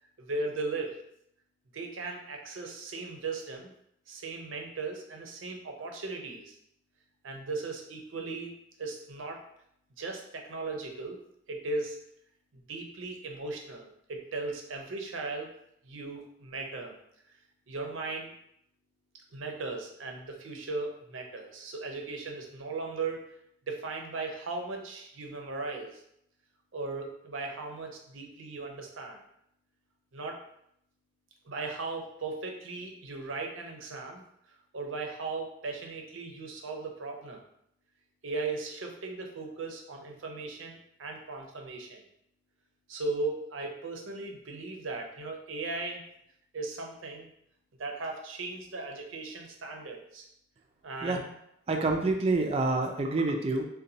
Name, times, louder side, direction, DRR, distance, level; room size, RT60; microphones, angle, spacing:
voice 1, 0.2-1.0 1.7-3.7 4.1-6.6 7.2-8.5 8.8-9.4 10.0-11.2 11.5-12.0 12.7-15.5 15.8-17.0 17.7-18.3 19.3-23.3 23.7-26.0 26.7-29.2 30.1-30.4 31.5-34.2 34.7-37.4 38.2-42.0 42.9-46.0 46.5-47.3 47.8-50.3 50.8-51.2, right 3 dB, 80° right, 2 dB, 0.6 m, -37 dB
voice 2, 51.7-53.7, right 2 dB, 30° right, 3 dB, 0.3 m, -27 dB
4.0 x 2.2 x 2.7 m, 0.73 s
head